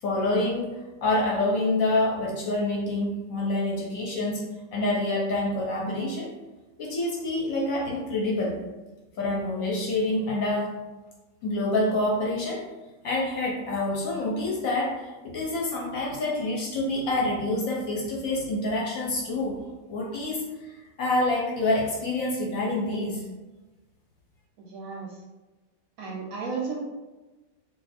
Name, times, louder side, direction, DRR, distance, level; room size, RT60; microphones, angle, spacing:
voice 1, 0.0-6.3 6.8-8.6 9.2-10.7 11.4-12.7 13.0-19.6 19.9-20.7 21.0-23.2, left 2 dB, 65° left, -3 dB, 0.9 m, -27 dB
voice 2, 24.6-25.2 26.0-26.8, right 4 dB, 70° right, -2 dB, 0.9 m, -34 dB
2.5 x 2.4 x 4.1 m, 1.2 s
omnidirectional pair, 1.8 m